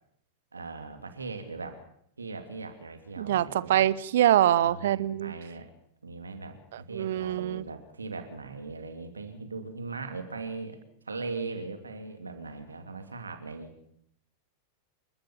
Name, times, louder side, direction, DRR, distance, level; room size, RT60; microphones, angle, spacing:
voice 1, 0.5-1.8 2.2-3.8 4.5-5.7 6.0-10.8 11.1-13.7, right 3 dB, 75° right, 2.8 m, -39 dB
voice 2, 3.7-5.3 6.9-7.6, right 12 dB, 60° right, 0.8 m, -24 dB
28.5 x 13.0 x 7.3 m
figure-of-eight pair, 90°, 0 cm